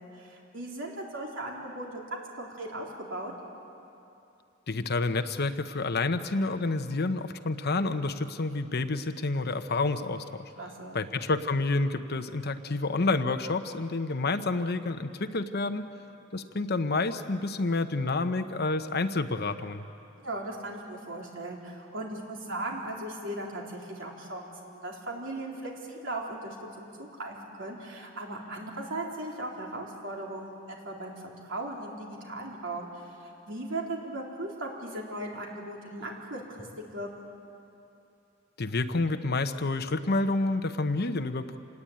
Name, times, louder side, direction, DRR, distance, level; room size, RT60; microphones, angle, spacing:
voice 1, 0.1-2.0 2.4-3.3 10.6-11.0 20.2-36.7 36.9-37.2, right 1 dB, 70° right, -1 dB, 3.8 m, -38 dB
voice 2, 4.7-10.2 10.9-15.8 16.3-19.8 38.6-41.6, left 3 dB, 55° left, 9 dB, 1.0 m, -29 dB
27.0 x 19.5 x 8.8 m, 2.8 s
head